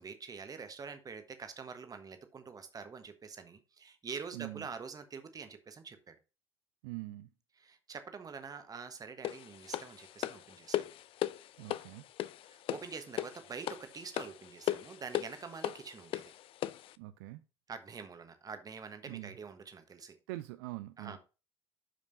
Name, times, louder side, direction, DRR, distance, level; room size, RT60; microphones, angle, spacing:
voice 1, 0.0-6.2 7.6-10.9 12.4-16.3 17.7-20.2 21.0-21.2, right 5 dB, 25° right, 1.2 m, -46 dB
voice 2, 4.3-4.7 6.8-7.3 11.6-12.0 17.0-17.4 19.1-19.4 20.3-21.2, right 18 dB, 60° right, 0.4 m, -43 dB
sound 1, 9.2-16.9, left 13 dB, 40° left, 0.4 m, -38 dB
11.5 x 5.2 x 2.7 m
figure-of-eight pair, 60°, 14 cm